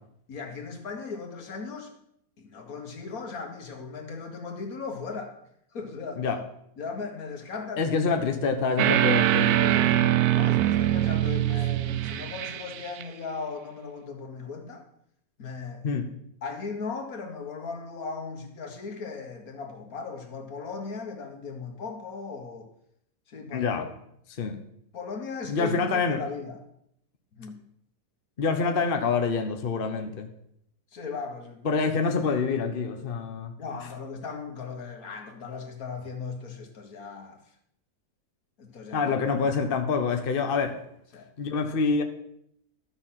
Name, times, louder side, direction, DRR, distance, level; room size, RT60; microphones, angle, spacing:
voice 1, 0.3-1.9 2.4-5.3 5.7-6.2 6.8-8.0 9.6-10.0 10.3-14.8 15.4-15.9 16.4-22.7 23.3-24.0 24.9-26.6 27.3-27.6 30.9-31.7 33.6-37.4 38.6-39.1 41.1-41.3, left 4 dB, 65° left, 4 dB, 1.9 m, -37 dB
voice 2, 7.8-10.1 15.8-16.1 23.5-23.9 24.3-24.6 25.5-26.2 28.4-30.3 31.6-33.5 38.9-40.8 41.4-42.0, left 5 dB, 40° left, 5 dB, 1.0 m, -26 dB
sound 1, 8.8-13.0, right 13 dB, 80° right, 1.1 m, -23 dB
12.0 x 7.0 x 5.8 m, 0.73 s
omnidirectional pair, 1.6 m